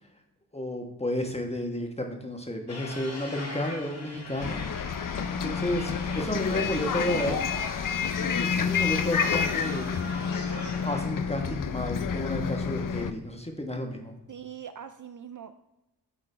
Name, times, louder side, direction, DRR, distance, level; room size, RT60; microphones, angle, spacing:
voice 1, 0.5-4.6 4.9-7.4 8.2-9.9 10.8-14.1, left 1 dB, 15° left, 3 dB, 1.3 m, -32 dB
sound 1, 2.7-11.0, left 2 dB, 70° left, 1.7 m, -40 dB
Bus, 4.4-13.1, left 6 dB, 50° left, 0.5 m, -29 dB
voice 2, 14.3-15.5, right 8 dB, 50° right, 9 dB, 0.4 m, -42 dB
8.3 x 3.8 x 3.3 m, 0.95 s
cardioid pair, 40°, 42 cm